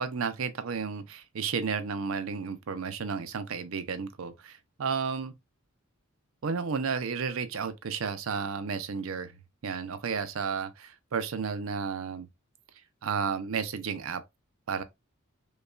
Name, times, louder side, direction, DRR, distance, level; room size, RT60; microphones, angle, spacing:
voice 1, 0.0-5.3 6.4-12.3 13.0-14.2 14.7-14.8, right 5 dB, 70° right, 0.5 m, -32 dB
5.2 x 2.3 x 2.2 m
head